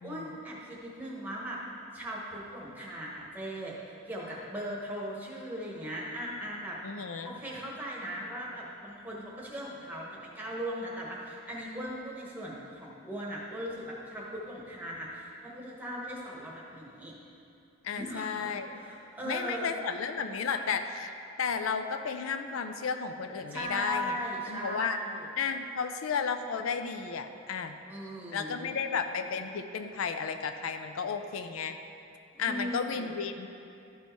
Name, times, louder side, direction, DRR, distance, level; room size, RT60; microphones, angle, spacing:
voice 1, 0.0-1.6 1.9-3.8 4.1-6.8 7.2-17.1 18.0-19.7 23.5-25.3 27.9-28.8 32.3-33.1, equal, 10° right, -5 dB, 1.2 m, -38 dB
voice 2, 6.8-7.4 17.8-18.8 19.2-24.2 24.5-25.0 25.4-27.8 28.3-31.8 32.4-33.5, left 6 dB, 80° left, 8 dB, 0.4 m, -33 dB
12.5 x 4.4 x 4.6 m, 2.6 s
head